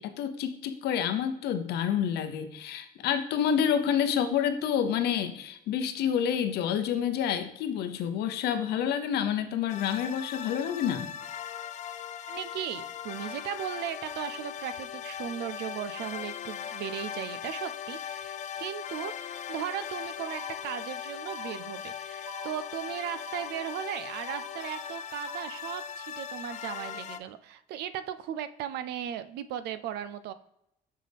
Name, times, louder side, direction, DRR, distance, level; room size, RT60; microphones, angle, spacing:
voice 1, 0.0-11.1, left 8 dB, 75° left, 9 dB, 0.7 m, -28 dB
sound 1, 9.7-27.2, left 9 dB, 45° left, 0.4 m, -39 dB
voice 2, 12.3-30.3, right 10 dB, 75° right, 13 dB, 0.5 m, -37 dB
sound 2, 20.3-20.9 21.3-21.9 22.3-22.9 23.3-23.9 24.3-24.9 25.3-25.9, right 1 dB, 35° right, 1.4 m, -46 dB
6.4 x 5.6 x 3.4 m, 0.82 s
cardioid pair, 110°, 17 cm